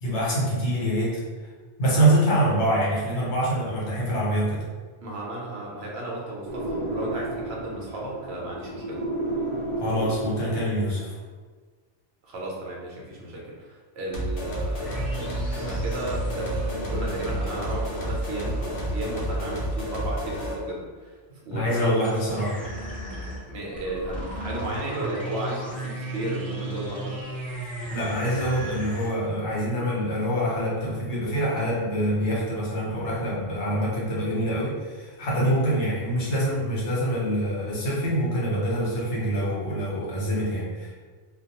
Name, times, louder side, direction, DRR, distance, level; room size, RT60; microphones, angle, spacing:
voice 1, 0.0-1.3 1.8-4.6 9.8-11.2 21.5-22.6 27.8-40.9, right 1 dB, 75° left, -6 dB, 1.1 m, -25 dB
voice 2, 5.0-9.0 12.2-15.1 15.5-21.2 21.4-22.0 23.5-27.2, right 1 dB, 70° right, -3 dB, 0.9 m, -34 dB
sound 1, 6.5-11.1, right 2 dB, 50° right, 0.6 m, -32 dB
sound 2, 14.1-20.7, equal, 60° left, 0.8 m, -30 dB
sound 3, 14.8-19.7 22.0-29.1, right 1 dB, ahead, 0.8 m, -36 dB
2.4 x 2.1 x 2.8 m, 1.5 s
omnidirectional pair, 1.2 m